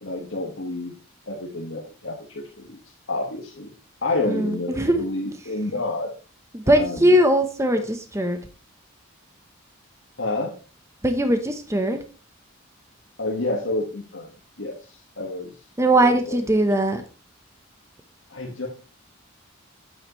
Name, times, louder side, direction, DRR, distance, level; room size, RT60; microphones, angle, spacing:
voice 1, 0.0-0.9 1.3-2.8 3.1-3.7 4.0-6.1 6.6-7.1 7.7-7.8 10.2-10.6 13.2-14.3 14.6-15.5 15.9-16.4 18.3-18.7, left 2 dB, 65° left, -3 dB, 1.6 m, -29 dB
voice 2, 4.3-5.0 6.5-8.4 11.0-12.0 15.8-17.0, right 1 dB, 15° right, 6 dB, 0.9 m, -20 dB
8.9 x 8.0 x 3.1 m, 0.34 s
head